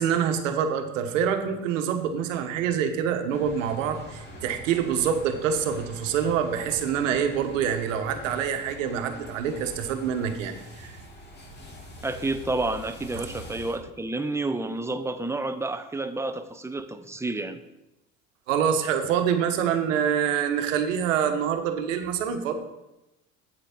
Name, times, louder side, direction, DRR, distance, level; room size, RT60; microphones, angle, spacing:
voice 1, 0.0-10.9 13.1-13.3 18.5-22.5, right 8 dB, 85° right, 7 dB, 1.1 m, -26 dB
sound 1, 3.3-13.8, left 1 dB, 25° left, 2.6 m, -44 dB
voice 2, 12.0-17.6, right 2 dB, 5° right, 9 dB, 0.7 m, -30 dB
8.2 x 8.1 x 4.3 m, 0.93 s
hypercardioid pair, 80°, 37 cm